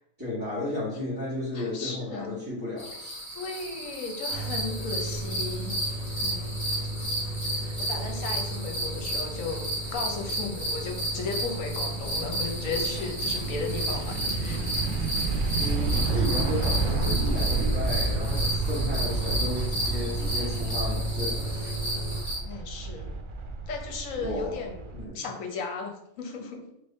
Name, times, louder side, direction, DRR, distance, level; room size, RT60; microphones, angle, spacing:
voice 1, 0.2-3.1 15.6-21.7 24.2-24.6 24.9-25.2, left 1 dB, 15° right, -12 dB, 1.5 m, -33 dB
voice 2, 1.5-2.4 3.3-5.8 6.1-6.5 7.8-14.6 14.9-15.1 22.4-23.2 23.7-24.8 25.1-26.7, left 4 dB, 65° left, 2 dB, 1.1 m, -35 dB
sound 1, 2.8-22.4, right 1 dB, 35° left, 1.4 m, -33 dB
sound 2, 4.3-22.2, right 2 dB, 40° right, 0.8 m, -35 dB
sound 3, 9.6-25.1, right 3 dB, 90° right, 0.4 m, -31 dB
3.3 x 3.3 x 4.1 m, 0.79 s
omnidirectional pair, 1.6 m